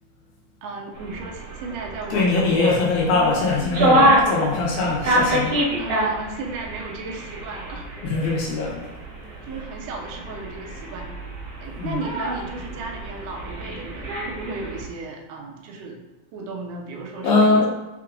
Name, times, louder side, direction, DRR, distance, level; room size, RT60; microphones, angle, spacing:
voice 1, 0.6-2.9 5.8-7.9 9.4-11.1 11.6-16.0 16.3-17.7, right 3 dB, 85° right, 0 dB, 2.3 m, -35 dB
sound 1, 0.9-14.8, right 1 dB, 55° right, 2.0 m, -26 dB
voice 2, 2.1-5.6 8.0-8.9 11.8-12.0 17.2-17.7, left 3 dB, 75° left, -3 dB, 2.1 m, -21 dB
5.9 x 3.7 x 2.4 m, 1.1 s
omnidirectional pair, 3.7 m